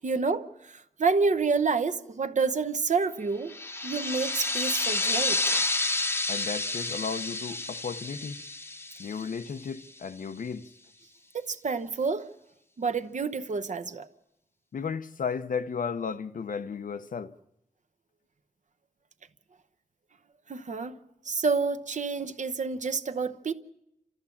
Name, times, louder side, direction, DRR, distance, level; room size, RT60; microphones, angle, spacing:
voice 1, 0.0-3.6 3.8-5.4 11.3-12.3 12.8-14.1 20.5-21.0 21.2-23.5, right 4 dB, 65° right, 0.9 m, -28 dB
sound 1, 3.5-9.8, left 2 dB, 15° left, 0.8 m, -30 dB
voice 2, 6.3-8.4 9.0-10.7 14.7-17.4, left 6 dB, 90° left, 0.7 m, -34 dB
28.5 x 13.5 x 7.1 m
wide cardioid pair, 100°, 13 cm